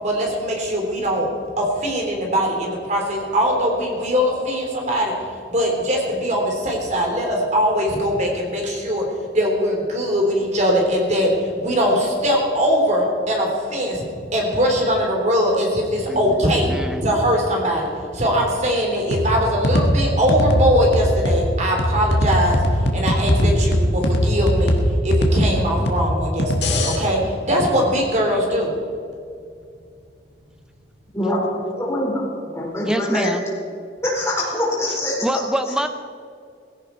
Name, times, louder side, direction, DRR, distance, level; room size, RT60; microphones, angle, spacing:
voice 1, 0.0-1.3 1.6-5.1 5.5-9.0 9.3-14.0 14.3-16.7 17.0-17.9 18.1-22.6 22.9-24.8 25.0-28.8, equal, 40° right, 0 dB, 3.5 m, -21 dB
voice 2, 16.1-17.0 32.9-33.4 35.2-35.9, equal, 5° right, 8 dB, 0.8 m, -25 dB
sound 1, 19.1-27.0, equal, 75° left, 1.7 m, -20 dB
voice 3, 31.7-32.2 32.5-33.3 34.0-35.4, left 1 dB, 15° left, -4 dB, 5.0 m, -23 dB
17.5 x 16.5 x 4.5 m, 2.3 s
head